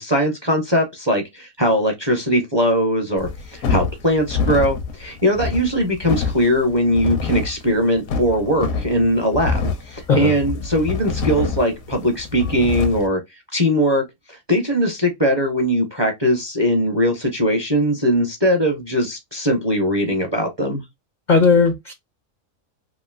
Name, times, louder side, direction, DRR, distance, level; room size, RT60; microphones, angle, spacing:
voice 1, 0.0-13.2 13.5-14.0 14.5-20.8, equal, 30° right, 0.5 m, -20 dB
sound 1, 3.2-13.1, left 4 dB, 80° left, 1.0 m, -26 dB
voice 2, 21.3-21.9, left 4 dB, 65° left, 0.4 m, -16 dB
2.9 x 2.7 x 2.4 m
omnidirectional pair, 1.4 m